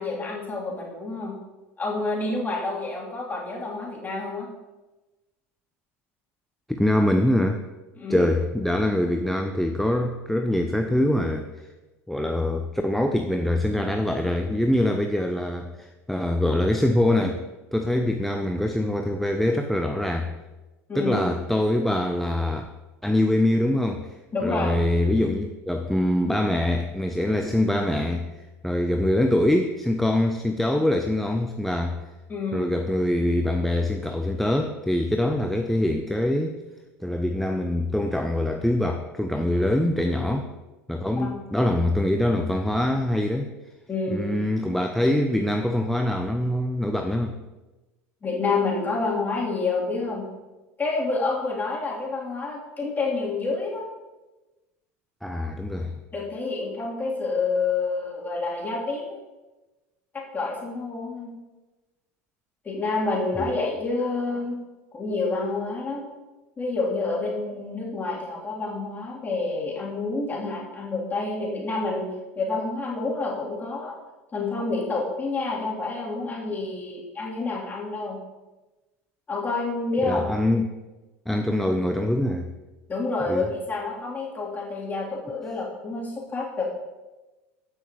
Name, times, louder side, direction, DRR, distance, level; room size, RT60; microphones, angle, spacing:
voice 1, 0.0-1.3 1.8-4.5 8.0-8.3 20.9-21.4 24.3-24.8 32.3-32.7 40.2-40.3 41.2-41.4 43.9-44.3 48.2-50.2 50.8-53.8 56.1-59.2 60.1-61.4 62.6-64.6 64.9-66.1 66.6-72.1 72.3-74.0 74.3-78.2 79.3-80.3 82.9-86.6, left 3 dB, 25° left, -5 dB, 3.4 m, -28 dB
voice 2, 6.7-7.6 8.1-11.5 12.1-17.4 17.7-20.3 20.9-22.7 23.0-28.3 28.6-32.0 32.5-36.6 37.0-40.5 40.9-43.5 44.1-47.4 55.2-56.0 63.4-63.5 80.0-80.7 81.3-82.5 83.3-83.5, left 1 dB, 5° left, 5 dB, 0.6 m, -24 dB
15.0 x 6.2 x 3.2 m, 1.1 s
hypercardioid pair, 90°, 7 cm